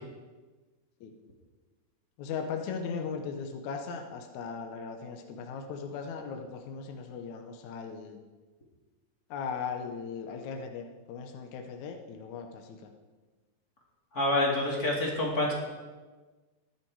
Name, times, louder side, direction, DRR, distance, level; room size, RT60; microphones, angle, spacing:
voice 1, 2.2-8.2 9.3-12.6, left 5 dB, 70° left, 4 dB, 2.0 m, -38 dB
voice 2, 14.1-15.5, left 1 dB, 30° left, -3 dB, 2.5 m, -27 dB
21.0 x 7.5 x 4.7 m, 1.3 s
omnidirectional pair, 4.1 m